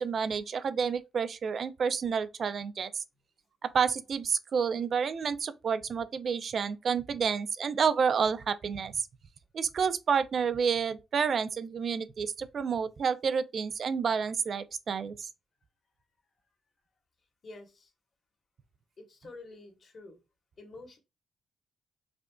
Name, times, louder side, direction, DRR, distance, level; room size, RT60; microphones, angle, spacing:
voice 1, 0.0-3.0 3.6-9.1 9.5-15.3, right 6 dB, 55° right, 0.4 m, -29 dB
voice 2, 17.4-17.9 19.0-20.2 20.6-21.0, left 2 dB, 50° left, 1.3 m, -48 dB
4.9 x 2.5 x 2.2 m
cardioid pair, 90°, 0 cm